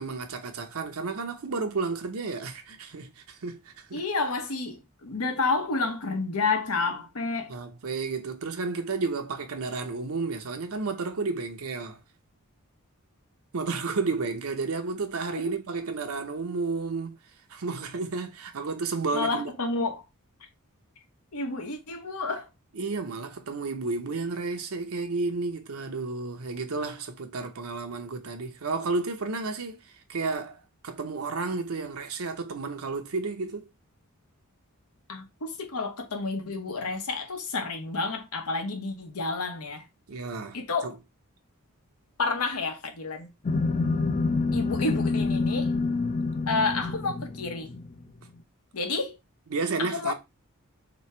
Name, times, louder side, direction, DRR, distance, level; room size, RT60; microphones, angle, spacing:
voice 1, 0.0-4.0 7.5-12.0 13.5-17.2 17.5-19.5 22.7-33.6 40.1-40.9 49.5-50.1, right 4 dB, 70° right, 0.7 m, -32 dB
voice 2, 3.9-7.5 19.1-20.0 21.3-22.5 35.1-39.8 40.5-40.9 42.2-43.3 44.5-45.7 46.5-47.7 48.7-49.2 49.8-50.1, left 3 dB, 80° left, 1.1 m, -30 dB
sound 1, 43.5-48.0, left 3 dB, 35° left, 0.4 m, -27 dB
3.4 x 3.1 x 4.3 m
head